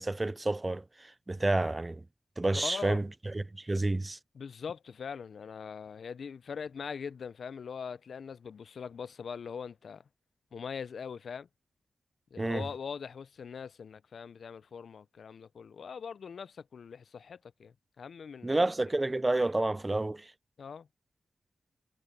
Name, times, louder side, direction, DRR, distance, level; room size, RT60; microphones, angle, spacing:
voice 1, 0.0-2.0 2.4-3.1 3.3-4.2 12.4-12.6 18.4-20.3, right 2 dB, 25° right, 0.4 m, -29 dB
voice 2, 2.5-3.1 4.3-10.0 10.5-11.5 12.3-18.7 20.6-20.9, left 6 dB, 75° left, 0.4 m, -42 dB
cardioid pair, 80°, 0 cm